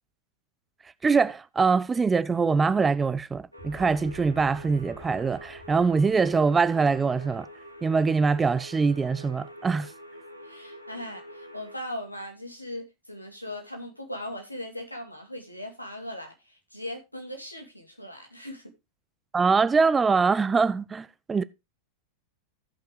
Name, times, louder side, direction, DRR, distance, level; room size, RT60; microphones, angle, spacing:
voice 1, 1.0-7.5 7.8-9.9 19.3-21.4, right 4 dB, 15° right, 0.4 m, -23 dB
sound 1, 3.5-11.8, equal, 90° right, 1.1 m, -46 dB
sound 2, 3.6-7.9, left 1 dB, 20° left, 2.7 m, -50 dB
voice 2, 10.4-18.7, left 1 dB, 90° left, 2.2 m, -39 dB
16.5 x 5.7 x 3.3 m
figure-of-eight pair, 90°, 0 cm